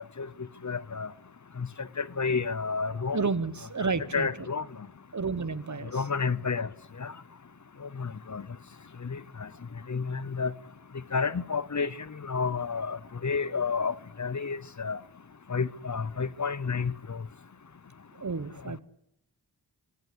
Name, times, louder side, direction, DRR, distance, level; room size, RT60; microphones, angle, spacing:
voice 1, 0.6-1.1 1.6-1.7 2.0-3.2 4.1-4.6 5.9-6.7 7.0-7.1 8.0-8.4 9.0-9.5 9.9-10.5 11.1-11.9 12.2-15.0 15.5-17.2, left 5 dB, 45° left, 0.8 m, -30 dB
voice 2, 3.1-4.3 5.1-6.0 18.2-18.8, right 4 dB, 45° right, 1.2 m, -31 dB
25.0 x 16.5 x 8.1 m
wide cardioid pair, 75°, 39 cm